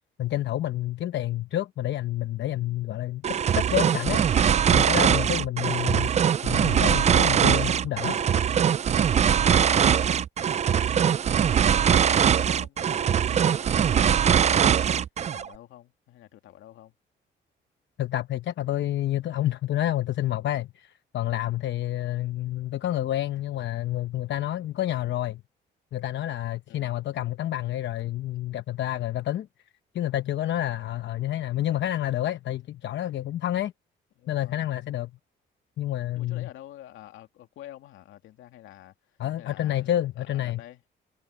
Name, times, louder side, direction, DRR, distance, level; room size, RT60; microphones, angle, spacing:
voice 1, 0.2-3.2 3.5-4.2 4.7-6.1 6.4-8.2 18.0-25.4 25.9-29.5 29.9-33.7 34.3-35.1 35.8-36.5 39.2-40.6, left 13 dB, 65° left, 0.9 m, -29 dB
sound 1, 3.2-15.5, right 8 dB, 35° right, 0.4 m, -22 dB
voice 2, 7.7-8.4 9.1-10.3 10.9-14.9 15.3-16.9 26.7-26.9 34.2-34.7 36.2-40.8, left 13 dB, 85° left, 2.5 m, -49 dB
cardioid pair, 90°, 20 cm